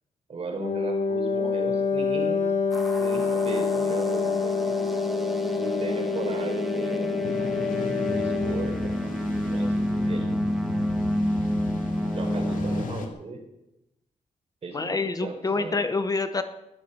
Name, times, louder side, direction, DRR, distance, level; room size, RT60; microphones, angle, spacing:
voice 1, 0.3-2.4 3.0-4.8 5.6-7.5 8.2-9.1 9.4-10.3 12.1-13.4 14.6-15.8, right 3 dB, 50° right, 3 dB, 4.4 m, -36 dB
Wind instrument woodwind instrument, 0.6-8.7, left 5 dB, 65° left, 1.9 m, -27 dB
sound 1, 2.7-12.9, equal, ahead, 2.1 m, -29 dB
sound 2, 7.2-13.1, left 4 dB, 85° left, 2.3 m, -38 dB
voice 2, 14.7-16.4, left 3 dB, 30° left, 10 dB, 0.9 m, -27 dB
21.0 x 11.5 x 5.7 m, 0.91 s
wide cardioid pair, 135°, 13 cm